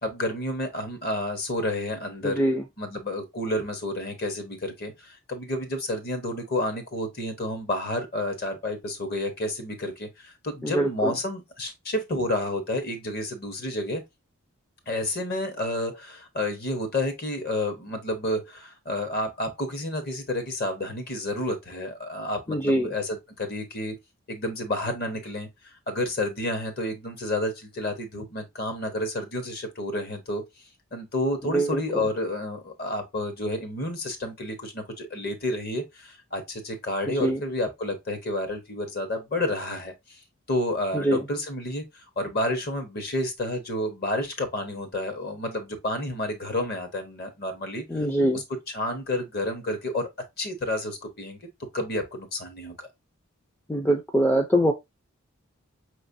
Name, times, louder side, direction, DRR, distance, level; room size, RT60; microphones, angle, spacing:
voice 1, 0.0-2.4 2.8-14.0 14.9-23.9 24.3-25.5 25.9-30.4 30.9-39.9 40.5-41.8 42.2-47.8 48.3-48.4 48.7-50.1 50.4-51.4 51.7-52.9, left 1 dB, 45° left, 1.0 m, -30 dB
voice 2, 2.2-2.6 10.6-11.1 22.5-22.9 31.4-32.0 37.1-37.4 40.9-41.2 47.9-48.4 53.7-54.7, right 1 dB, 10° left, 0.4 m, -24 dB
5.2 x 3.1 x 2.6 m
head